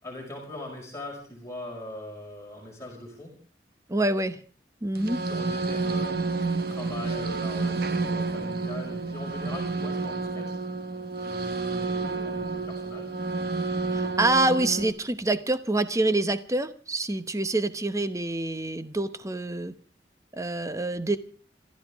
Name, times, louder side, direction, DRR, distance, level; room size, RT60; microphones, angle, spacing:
voice 1, 0.0-3.4 5.2-6.2 6.7-10.6 11.2-13.1, left 1 dB, 15° left, -1 dB, 5.6 m, -40 dB
voice 2, 3.9-4.4 4.8-5.2 13.9-19.7 20.3-21.2, right 2 dB, 20° right, 11 dB, 0.9 m, -26 dB
sound 1, 4.9-14.9, right 3 dB, 60° right, 1.2 m, -30 dB
26.5 x 14.0 x 3.6 m, 0.41 s
head